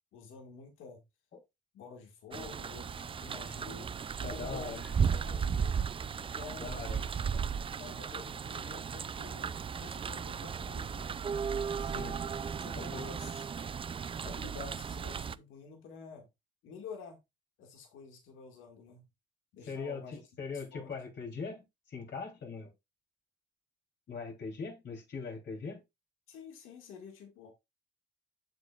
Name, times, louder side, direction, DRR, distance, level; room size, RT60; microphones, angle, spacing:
voice 1, 0.1-1.0 1.7-3.9 4.2-5.8 6.2-6.7 7.8-9.5 9.8-11.2 12.6-13.5 14.2-16.3 16.6-17.2 17.6-19.0 19.5-20.2 20.5-20.9 26.3-27.5, left 5 dB, 85° left, 2.0 m, -49 dB
sound 1, 2.3-15.4, right 6 dB, 25° right, 0.4 m, -35 dB
voice 2, 4.2-4.9 6.6-7.5 11.8-12.1 12.7-13.0 19.7-22.7 24.1-25.8, left 5 dB, 60° left, 3.3 m, -41 dB
7.6 x 7.2 x 2.4 m
cardioid pair, 90°, 20 cm